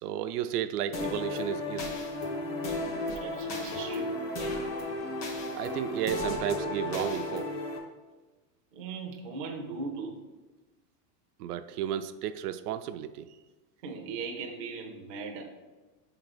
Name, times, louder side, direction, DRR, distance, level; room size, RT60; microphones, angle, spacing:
voice 1, 0.0-2.0 4.5-4.9 5.5-7.5 11.4-13.4, right 10 dB, 70° right, 10 dB, 0.5 m, -33 dB
sound 1, 0.9-7.8, left 2 dB, 25° left, 0.6 m, -34 dB
voice 2, 3.2-4.1 8.7-10.2 13.8-15.4, right 4 dB, 25° right, 1 dB, 0.4 m, -38 dB
5.4 x 3.9 x 6.0 m, 1.2 s
supercardioid pair, 175°, 47 cm